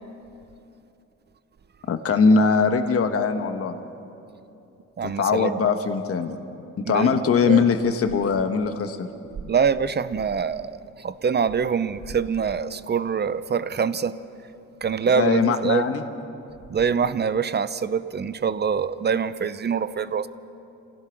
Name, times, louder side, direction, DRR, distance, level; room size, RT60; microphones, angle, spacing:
voice 1, 1.9-3.8 5.0-6.4 6.8-9.1 15.1-16.0, left 5 dB, 50° left, 7 dB, 1.3 m, -21 dB
voice 2, 5.0-5.6 6.8-7.6 9.4-14.2 14.8-15.8 16.7-20.3, right 6 dB, 35° right, 14 dB, 0.7 m, -24 dB
26.5 x 16.5 x 6.0 m, 2.8 s
cardioid pair, 90°, 30 cm